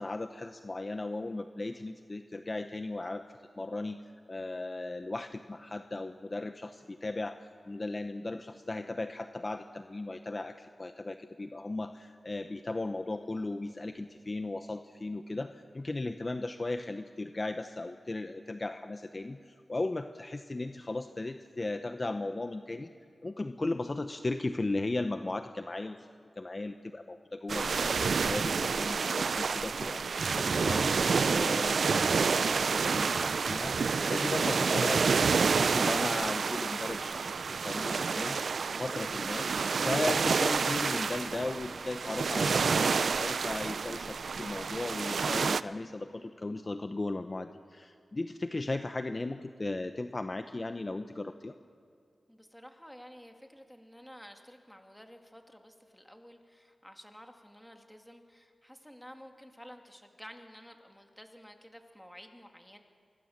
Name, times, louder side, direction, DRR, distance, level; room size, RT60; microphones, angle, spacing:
voice 1, 0.0-3.2 3.6-4.0 4.3-7.4 7.7-22.9 23.2-26.1 26.4-30.9 31.3-37.3 37.6-38.4 38.7-39.5 39.8-51.5, left 2 dB, 35° left, 8 dB, 0.8 m, -36 dB
sound 1, 27.5-45.6, right 5 dB, 75° right, 0.5 m, -29 dB
sound 2, 40.8-42.3, right 1 dB, 20° right, 3.8 m, -52 dB
voice 2, 52.3-62.8, equal, 5° left, 4 dB, 2.6 m, -52 dB
25.0 x 20.0 x 7.4 m, 2.4 s
wide cardioid pair, 70°, 0 cm